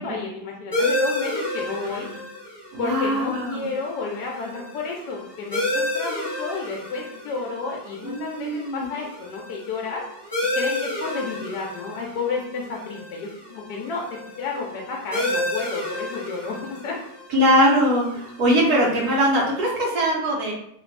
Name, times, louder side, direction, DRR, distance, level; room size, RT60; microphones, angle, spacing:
voice 1, 0.0-2.1 2.8-10.0 10.6-14.0 14.4-17.0, left 4 dB, 80° left, -1 dB, 1.2 m, -31 dB
sound 1, 0.7-19.9, left 1 dB, 30° left, 0.4 m, -31 dB
voice 2, 1.8-2.2 2.7-3.7 8.0-8.9 17.3-20.5, equal, 65° right, -3 dB, 1.5 m, -21 dB
3.3 x 2.5 x 3.2 m, 0.74 s
omnidirectional pair, 1.8 m